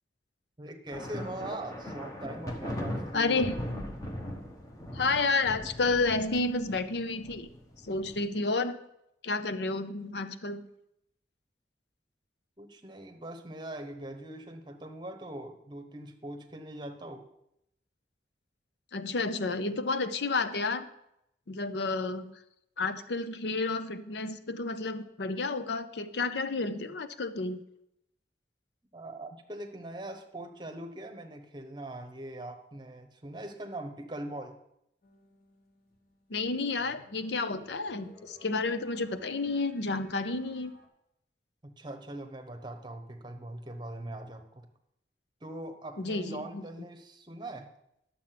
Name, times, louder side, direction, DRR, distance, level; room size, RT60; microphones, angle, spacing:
voice 1, 0.6-3.5 12.6-17.3 28.9-34.6 41.6-44.7 45.4-47.7, right 1 dB, 25° right, 5 dB, 1.0 m, -42 dB
sound 1, 0.9-8.2, left 1 dB, 20° left, 1.1 m, -39 dB
voice 2, 3.1-3.6 4.9-7.5 7.8-8.8 9.2-10.6 18.9-20.9 21.5-22.3 22.8-27.6 36.3-40.7 46.0-46.6, left 3 dB, 75° left, 11 dB, 0.7 m, -31 dB
sound 2, 35.0-40.9, left 1 dB, 50° left, 1.4 m, -57 dB
11.0 x 7.1 x 5.9 m, 0.80 s
head